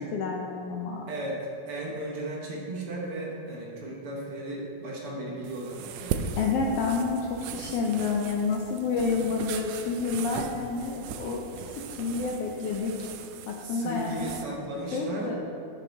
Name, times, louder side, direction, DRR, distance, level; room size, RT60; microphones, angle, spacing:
voice 1, 0.1-1.1 6.4-11.4 11.7-13.1 13.5-14.4 14.9-15.4, left 4 dB, 80° left, 0 dB, 1.4 m, -29 dB
voice 2, 1.1-6.2 13.6-15.4, right 1 dB, 60° right, -3 dB, 1.7 m, -35 dB
sound 1, 5.4-14.4, right 7 dB, 85° right, 1.4 m, -38 dB
8.9 x 7.3 x 3.9 m, 2.5 s
omnidirectional pair, 3.4 m